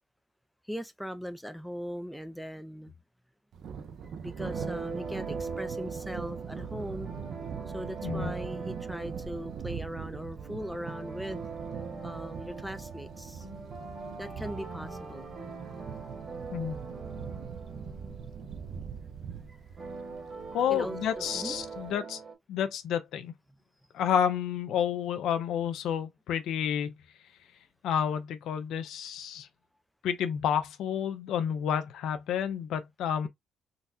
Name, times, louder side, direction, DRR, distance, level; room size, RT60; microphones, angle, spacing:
voice 1, 0.7-2.9 4.2-7.1 7.7-11.5 12.0-13.5 14.2-15.3 19.5-19.9 20.7-21.6, equal, ahead, 0.4 m, -39 dB
Thunder, 3.5-21.9, right 7 dB, 65° right, 0.6 m, -42 dB
sound 1, 4.4-22.3, right 4 dB, 45° right, 1.4 m, -42 dB
voice 2, 20.5-22.2 22.5-23.3 23.9-26.9 27.8-29.5 30.0-33.3, left 9 dB, 80° left, 0.6 m, -30 dB
3.9 x 2.1 x 2.6 m
cardioid pair, 90°, 0 cm